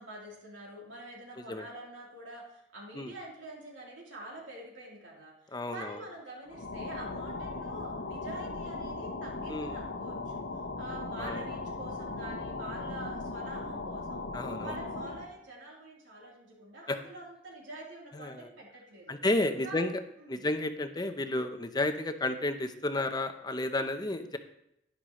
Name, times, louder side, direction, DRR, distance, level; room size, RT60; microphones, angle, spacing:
voice 1, 0.0-10.4 10.8-14.3 14.6-19.2 19.6-19.8 20.2-20.5, right 1 dB, 85° right, -3 dB, 3.5 m, -46 dB
voice 2, 1.4-1.7 2.9-3.1 5.5-6.0 9.5-9.8 11.2-11.5 14.3-14.8 16.9-17.0 18.1-18.5 19.1-20.0 20.3-24.4, left 2 dB, 20° left, 8 dB, 0.7 m, -32 dB
sound 1, 6.5-15.3, left 3 dB, 80° left, 1.1 m, -38 dB
11.0 x 10.0 x 3.1 m, 0.78 s
head